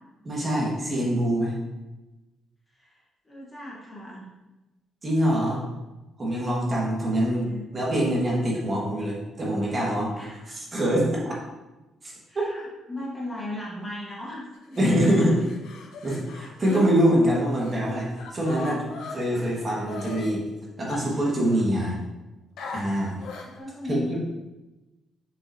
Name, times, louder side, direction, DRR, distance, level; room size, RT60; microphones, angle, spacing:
voice 1, 0.2-1.5 5.0-5.7 6.2-7.4 7.7-10.1 10.5-11.1 12.0-12.1 14.8-15.4 16.0-20.4 20.8-21.9 22.7-23.2 23.9-24.2, equal, 25° right, -4 dB, 1.5 m, -24 dB
voice 2, 3.2-4.3 7.2-7.6 10.2-10.5 12.3-15.3 23.4-24.2, left 1 dB, 15° left, -5 dB, 1.1 m, -37 dB
sound 1, 14.5-17.8 18.2-20.3 20.9-21.9 22.6-23.6, left 4 dB, 75° left, 0.8 m, -41 dB
6.9 x 5.5 x 2.7 m, 1.1 s
cardioid pair, 175°, 0 cm